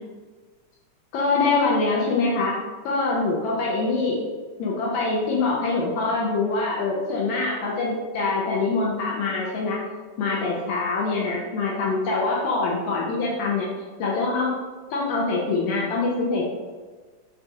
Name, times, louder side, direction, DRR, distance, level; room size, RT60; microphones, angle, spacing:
voice 1, 1.1-2.5 2.9-4.2 4.6-9.8 10.2-13.7 14.0-14.5 14.9-16.4, left 3 dB, 80° left, -4 dB, 1.7 m, -24 dB
5.2 x 2.3 x 2.7 m, 1.4 s
omnidirectional pair, 3.6 m